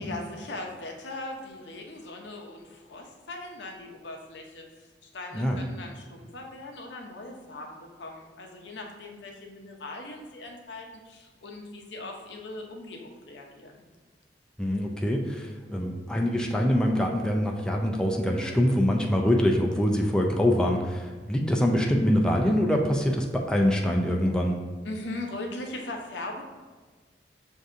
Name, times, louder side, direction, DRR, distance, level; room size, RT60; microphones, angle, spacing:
voice 1, 0.0-13.8 24.8-26.4, left 2 dB, 80° left, 1 dB, 0.6 m, -40 dB
voice 2, 14.6-24.6, equal, 5° left, 0 dB, 0.3 m, -24 dB
6.4 x 2.6 x 2.4 m, 1.4 s
head